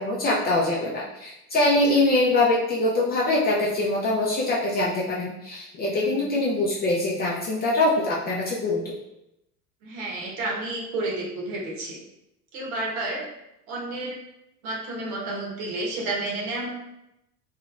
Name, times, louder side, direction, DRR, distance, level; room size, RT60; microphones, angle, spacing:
voice 1, 0.0-8.9, left 2 dB, 20° left, -4 dB, 0.4 m, -23 dB
voice 2, 5.9-6.3 9.8-12.0 12.5-13.3 13.7-14.2 14.6-16.7, right 2 dB, 60° right, -3 dB, 1.1 m, -31 dB
3.1 x 2.8 x 2.4 m, 0.86 s
hypercardioid pair, 80°, 47 cm